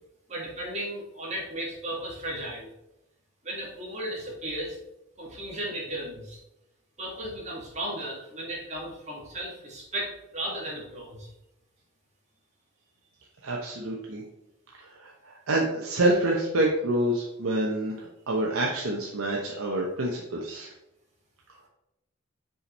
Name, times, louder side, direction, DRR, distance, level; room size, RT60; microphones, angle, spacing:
voice 1, 0.3-2.7 3.4-4.8 5.2-6.4 7.0-11.3, right 1 dB, 30° right, -3 dB, 1.8 m, -35 dB
voice 2, 13.4-14.2 15.0-20.7, right 1 dB, 80° right, -2 dB, 0.9 m, -27 dB
5.4 x 5.1 x 4.1 m, 0.89 s
head